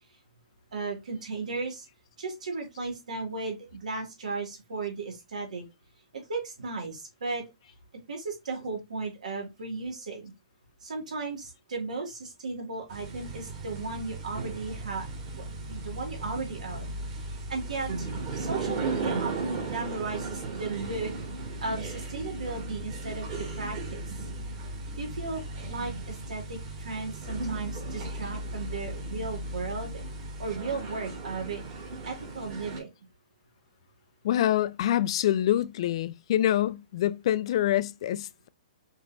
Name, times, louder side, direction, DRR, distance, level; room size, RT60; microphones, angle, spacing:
voice 1, 0.7-1.9 2.2-5.6 6.1-7.5 8.1-10.3 10.8-15.1 15.4-16.9 17.5-18.1 18.4-21.1 21.6-24.0 25.0-30.0 30.4-31.6 32.0-32.9, right 3 dB, 85° right, 2.1 m, -35 dB
sound 1, 12.9-32.8, right 2 dB, 35° right, 1.8 m, -36 dB
voice 2, 34.2-38.5, left 12 dB, 50° left, 0.3 m, -26 dB
5.4 x 2.9 x 2.6 m
hypercardioid pair, 155°, 4 cm